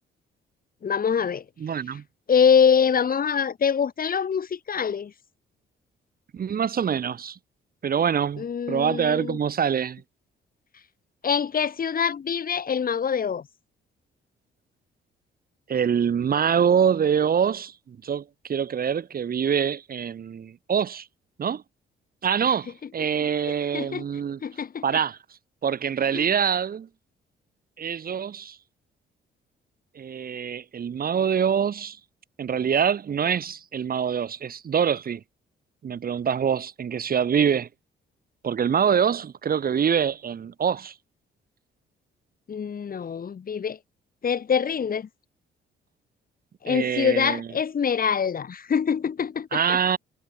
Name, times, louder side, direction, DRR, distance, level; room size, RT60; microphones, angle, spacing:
voice 1, 0.8-1.4 2.3-5.1 8.4-9.4 11.2-13.5 23.0-23.3 23.7-24.0 24.4-24.9 26.1-26.3 42.5-43.8 44.2-45.1 46.6-49.8, left 7 dB, 45° left, 3.4 m, -24 dB
voice 2, 1.6-2.0 6.3-7.4 7.8-10.0 15.7-18.2 18.5-21.1 21.4-21.6 22.2-24.4 24.8-25.2 25.6-26.9 27.8-28.6 30.0-32.0 32.4-35.2 35.8-37.7 38.4-40.9 46.7-47.5 49.5-50.0, right 7 dB, 50° right, 1.7 m, -25 dB
cardioid pair, 90°, 20 cm